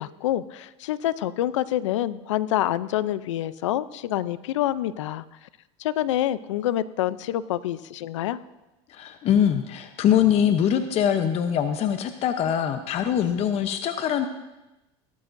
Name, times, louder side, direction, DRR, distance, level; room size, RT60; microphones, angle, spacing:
voice 1, 0.0-5.2 5.8-8.4, left 13 dB, 85° left, 16 dB, 0.5 m, -27 dB
voice 2, 8.9-14.3, left 9 dB, 45° left, 8 dB, 0.8 m, -23 dB
17.5 x 12.0 x 2.6 m, 1.0 s
supercardioid pair, 105°, 15 cm